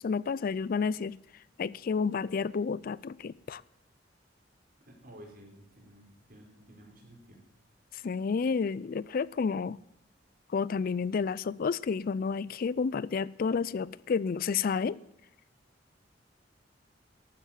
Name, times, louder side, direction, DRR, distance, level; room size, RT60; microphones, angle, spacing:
voice 1, 0.0-1.2 1.6-3.6 8.0-9.8 10.5-15.0, left 5 dB, 50° left, 0.4 m, -30 dB
voice 2, 4.8-7.4, equal, 55° right, 4.4 m, -53 dB
12.5 x 9.3 x 7.3 m
head